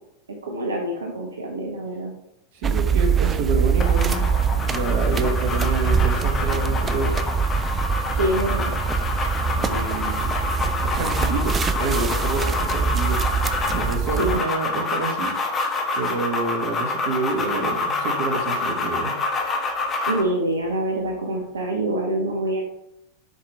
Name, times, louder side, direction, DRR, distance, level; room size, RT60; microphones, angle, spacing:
voice 1, 0.4-2.1 8.1-8.7 14.2-14.4 20.1-22.6, right 1 dB, 70° right, 1 dB, 0.9 m, -25 dB
voice 2, 2.5-4.3 4.6-7.1 9.5-10.3 10.8-15.3 16.0-19.2, right 2 dB, 50° right, 4 dB, 1.3 m, -28 dB
sound 1, 2.6-14.4, right 6 dB, 20° right, 0.4 m, -23 dB
sound 2, 3.8-20.3, left 3 dB, 25° left, 1.1 m, -27 dB
6.7 x 5.0 x 3.5 m, 0.83 s
figure-of-eight pair, 90°, 0 cm